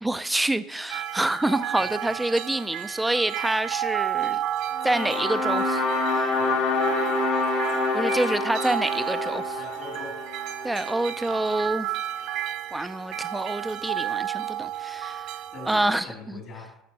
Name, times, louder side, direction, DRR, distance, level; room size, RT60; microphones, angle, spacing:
voice 1, 0.0-4.4 4.8-6.3 7.9-9.6 10.6-11.9 12.7-15.3 15.6-16.4, right 1 dB, 10° right, 0.4 m, -27 dB
sound 1, 0.9-15.9, right 11 dB, 70° right, 1.0 m, -32 dB
sound 2, 4.8-11.0, left 3 dB, 75° left, 1.6 m, -27 dB
voice 2, 9.6-10.2 15.5-16.8, left 2 dB, 55° left, 2.5 m, -41 dB
11.5 x 6.7 x 2.8 m
hypercardioid pair, 85°, 0 cm